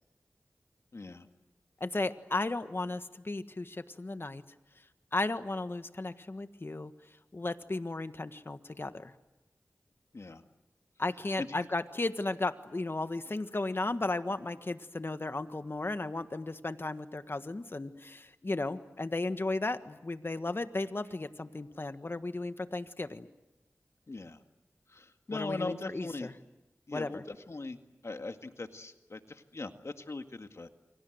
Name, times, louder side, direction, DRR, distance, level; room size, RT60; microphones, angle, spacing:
voice 1, 0.9-1.3 10.1-10.4 11.4-11.7 24.1-24.4 24.9-26.3 26.9-27.8 28.0-30.7, left 3 dB, 60° left, 7 dB, 1.9 m, -40 dB
voice 2, 1.8-4.4 5.1-6.9 7.3-9.1 11.0-23.3 25.3-26.3 26.9-27.2, left 2 dB, 45° left, 10 dB, 1.5 m, -35 dB
28.5 x 24.5 x 8.0 m, 1.0 s
cardioid pair, 45°, 5 cm